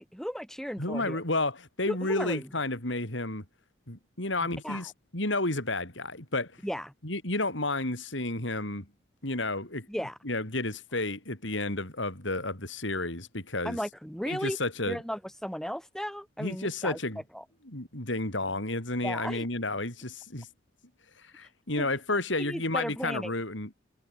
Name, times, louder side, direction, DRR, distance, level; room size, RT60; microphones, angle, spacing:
voice 1, 0.0-1.2 1.9-2.5 4.6-4.9 6.6-6.9 9.9-10.2 13.6-14.6 14.9-17.0 17.3-17.4 19.0-19.5 21.8-21.9 22.4-23.3, equal, ahead, 2.9 m, -35 dB
voice 2, 0.8-3.4 3.9-6.6 7.0-8.9 9.2-9.9 10.2-13.8 14.3-15.0 16.4-17.2 17.7-20.5 21.3-23.7, left 2 dB, 75° left, 6.0 m, -31 dB
head